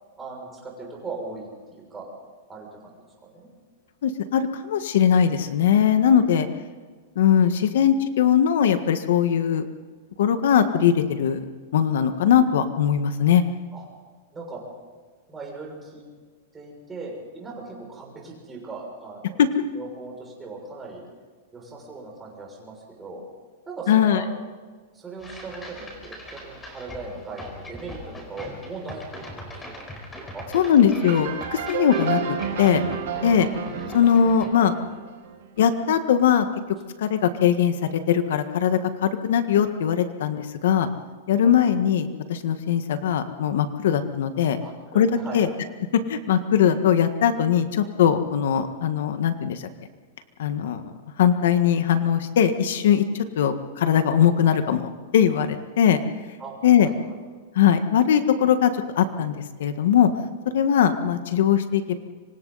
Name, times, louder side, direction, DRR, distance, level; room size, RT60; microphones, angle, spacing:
voice 1, 0.2-2.1 2.5-2.9 3.2-3.5 13.7-13.8 14.3-14.6 15.3-16.0 16.5-19.4 19.7-21.0 21.5-23.3 23.7-24.3 24.9-29.0 29.4-29.9 30.2-30.6 33.1-33.3 41.4-41.6 44.6-45.4 56.4-56.9, right 3 dB, 10° right, -2 dB, 6.6 m, -39 dB
voice 2, 4.0-6.5 7.1-9.6 10.2-11.4 11.7-13.4 19.4-19.5 23.9-24.2 30.5-32.8 33.2-33.5 33.9-34.7 35.6-36.4 37.0-40.9 41.3-44.6 44.9-45.5 46.1-49.7 50.4-50.8 51.2-56.0 56.6-56.9 57.5-60.1 60.5-62.0, left 8 dB, 70° left, 8 dB, 1.6 m, -20 dB
sound 1, 25.2-34.5, equal, 10° left, 4.6 m, -40 dB
sound 2, 31.0-35.6, right 7 dB, 70° right, 6.3 m, -31 dB
27.0 x 25.5 x 4.2 m, 1.5 s
supercardioid pair, 165°, 0 cm